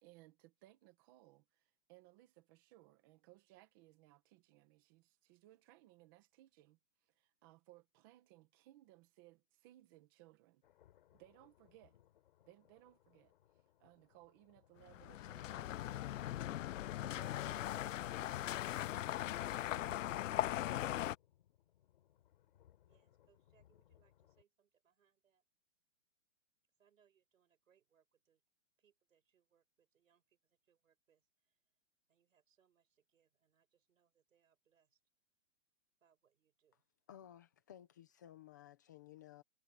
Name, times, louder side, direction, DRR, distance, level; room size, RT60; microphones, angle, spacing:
voice 1, 0.0-10.6 11.1-12.0 12.4-16.4 16.9-18.6, right 17 dB, 15° right, 1.2 m, -64 dB
sound 1, 10.6-24.4, left 12 dB, 40° left, 4.1 m, -69 dB
sound 2, 14.9-21.2, left 13 dB, 75° left, 0.5 m, -39 dB
voice 2, 22.8-25.4 26.8-28.4 28.8-31.6 32.1-35.0 36.0-36.9, right 8 dB, 80° right, 7.2 m, -78 dB
voice 3, 37.1-39.4, left 11 dB, 15° left, 0.7 m, -57 dB
hypercardioid pair, 180°, 39 cm